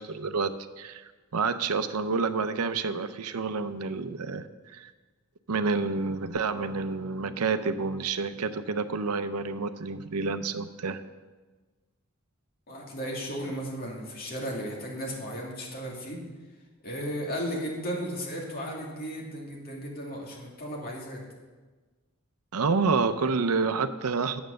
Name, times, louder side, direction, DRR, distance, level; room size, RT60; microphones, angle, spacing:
voice 1, 0.0-4.9 5.5-11.0 22.5-24.4, right 4 dB, 85° right, 11 dB, 0.6 m, -29 dB
voice 2, 12.7-16.2 16.8-21.2, equal, 45° left, -2 dB, 2.3 m, -35 dB
9.0 x 8.0 x 6.4 m, 1.3 s
head